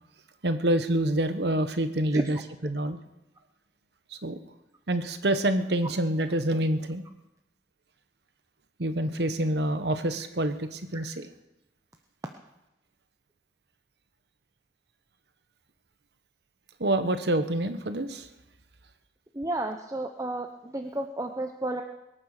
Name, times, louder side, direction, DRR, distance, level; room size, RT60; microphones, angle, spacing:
voice 1, 0.4-3.0 4.1-4.4 4.9-7.0 8.8-11.3 16.8-18.3, right 1 dB, 65° right, 10 dB, 1.2 m, -27 dB
voice 2, 19.3-21.8, right 1 dB, 20° right, 4 dB, 0.9 m, -32 dB
22.0 x 9.1 x 6.7 m, 0.95 s
head